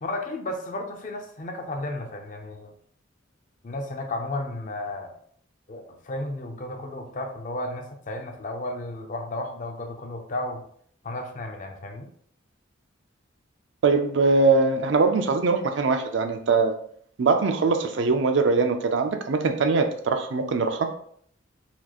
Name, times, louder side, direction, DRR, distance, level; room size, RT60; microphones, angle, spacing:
voice 1, 0.0-2.7 3.6-5.1 5.7-10.7 11.0-12.1, left 2 dB, 40° left, 4 dB, 0.5 m, -33 dB
voice 2, 13.8-16.7 17.2-20.9, right 4 dB, 65° right, 7 dB, 0.4 m, -22 dB
4.2 x 2.4 x 2.9 m, 0.62 s
head